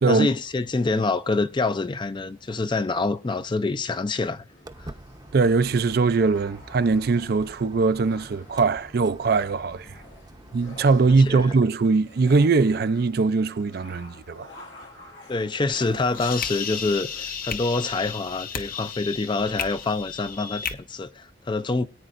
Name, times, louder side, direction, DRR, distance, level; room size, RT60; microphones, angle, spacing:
voice 1, 0.1-4.5 4.8-4.9 11.3-11.5 15.3-21.9, left 3 dB, 25° left, 0.4 m, -26 dB
sound 1, 4.5-17.3, left 2 dB, 85° left, 2.1 m, -49 dB
Walk footsteps, 4.6-11.6, right 1 dB, 20° right, 0.7 m, -45 dB
voice 2, 5.3-9.9 10.5-14.5, right 4 dB, 55° right, 0.4 m, -21 dB
sound 2, 15.7-20.7, left 7 dB, 50° left, 0.8 m, -34 dB
22.0 x 8.8 x 2.5 m
head